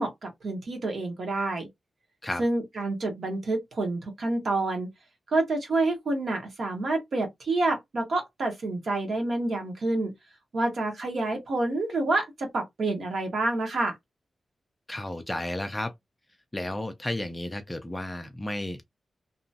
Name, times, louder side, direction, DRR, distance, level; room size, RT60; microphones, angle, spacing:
voice 1, 0.0-1.7 2.4-4.9 5.3-10.1 10.5-14.0, right 2 dB, 55° right, 1.1 m, -28 dB
voice 2, 14.9-15.9 16.5-18.8, left 1 dB, 10° left, 0.4 m, -32 dB
2.9 x 2.2 x 2.7 m
wide cardioid pair, 160°, 0 cm